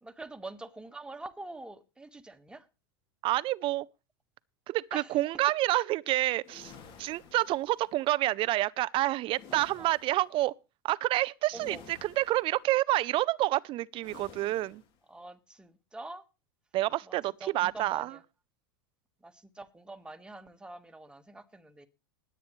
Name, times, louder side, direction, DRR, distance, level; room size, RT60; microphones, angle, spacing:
voice 1, 0.0-2.7 4.9-5.2 9.5-9.9 11.5-11.8 15.1-16.2 17.1-18.2 19.2-21.9, right 2 dB, 5° right, 1.6 m, -45 dB
voice 2, 3.2-3.9 4.7-6.7 7.0-10.5 10.8-14.8 16.7-18.2, right 16 dB, 45° right, 0.6 m, -28 dB
sound 1, 6.4-8.0 9.3-10.3 11.5-12.6 14.0-15.0, left 6 dB, 40° left, 3.1 m, -52 dB
20.5 x 8.9 x 3.2 m
hypercardioid pair, 110°, 13 cm